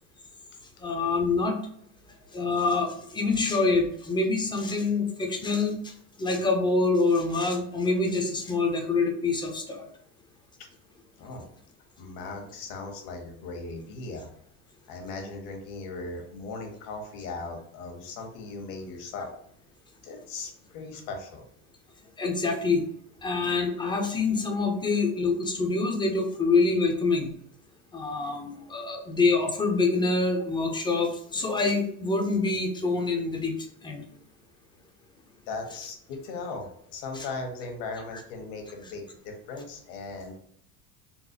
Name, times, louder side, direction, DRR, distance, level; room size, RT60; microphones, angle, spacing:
voice 1, 0.8-1.6 2.3-5.9 6.2-9.9 22.2-22.8 23.2-27.3 27.9-33.5 33.8-34.0 37.1-37.3, left 3 dB, 10° left, 3 dB, 0.4 m, -26 dB
voice 2, 12.0-14.3 14.9-19.3 20.0-21.4 23.3-23.4 35.5-40.4, left 3 dB, 70° left, 2 dB, 1.2 m, -38 dB
3.9 x 2.2 x 2.7 m, 0.67 s
supercardioid pair, 110°, 47 cm